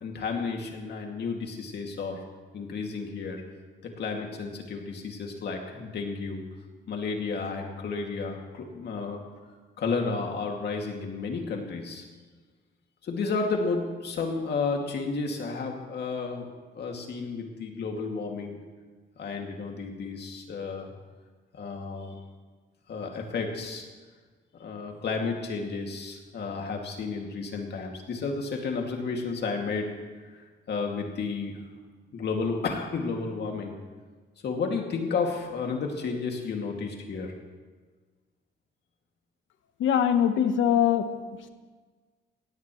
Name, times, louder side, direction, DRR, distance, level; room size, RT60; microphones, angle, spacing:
voice 1, 0.0-2.3 2.5-3.4 3.8-6.4 6.9-9.2 9.8-12.0 13.0-18.6 19.2-20.9 21.5-22.2 22.9-23.9 24.5-30.1 30.7-31.6 32.1-33.8 34.4-37.3, left 4 dB, 60° left, 2 dB, 2.3 m, -32 dB
voice 2, 39.8-41.5, left 9 dB, 85° left, 9 dB, 1.1 m, -23 dB
18.0 x 16.0 x 3.2 m, 1.4 s
cardioid pair, 105°, 19 cm